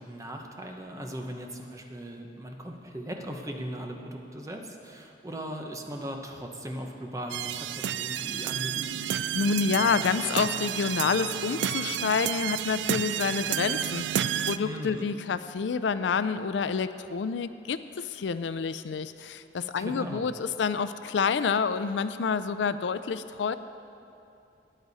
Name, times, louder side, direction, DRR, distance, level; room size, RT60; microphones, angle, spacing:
voice 1, 0.0-9.1 14.6-15.1 19.7-20.3, equal, 20° right, 2 dB, 0.9 m, -38 dB
sound 1, 7.3-14.6, right 10 dB, 75° right, 0.3 m, -31 dB
voice 2, 9.3-23.5, left 5 dB, 80° left, 13 dB, 0.4 m, -28 dB
13.5 x 10.0 x 4.1 m, 2.6 s
head